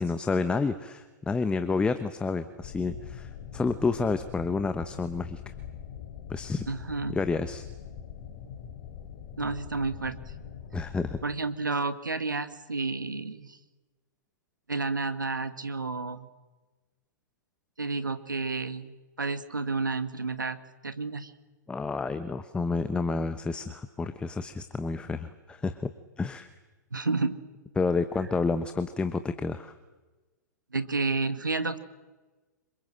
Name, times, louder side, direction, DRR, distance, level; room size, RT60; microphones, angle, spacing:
voice 1, 0.0-5.5 6.3-6.7 7.1-7.7 10.7-11.2 21.7-25.9 26.2-26.5 27.8-29.7, left 4 dB, 10° left, 11 dB, 1.0 m, -29 dB
sound 1, 2.6-11.2, left 8 dB, 45° left, 3.1 m, -43 dB
voice 2, 6.7-7.2 9.4-10.2 11.2-13.6 14.7-16.3 17.8-20.6 20.8-21.3 26.9-27.4 28.2-28.3 30.7-31.8, right 3 dB, 85° right, 12 dB, 1.7 m, -31 dB
27.0 x 24.5 x 7.7 m, 1.2 s
figure-of-eight pair, 105°, 10 cm